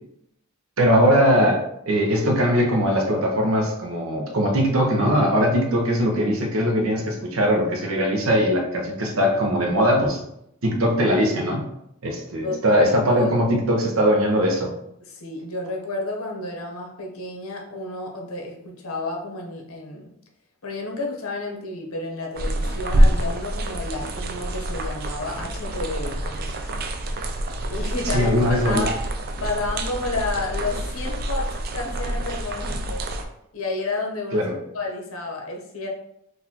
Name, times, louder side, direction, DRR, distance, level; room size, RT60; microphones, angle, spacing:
voice 1, 0.8-10.2 10.6-11.6 12.0-14.7 28.1-28.9 34.3-34.6, equal, 75° right, 1 dB, 0.8 m, -20 dB
voice 2, 12.4-13.3 15.0-20.1 20.6-26.7 27.7-29.0 29.4-33.0 33.5-34.5 34.7-35.9, left 2 dB, 80° left, 1 dB, 0.8 m, -31 dB
sound 1, 22.3-33.2, right 1 dB, 45° right, 0.4 m, -26 dB
4.0 x 2.6 x 2.8 m, 0.78 s
head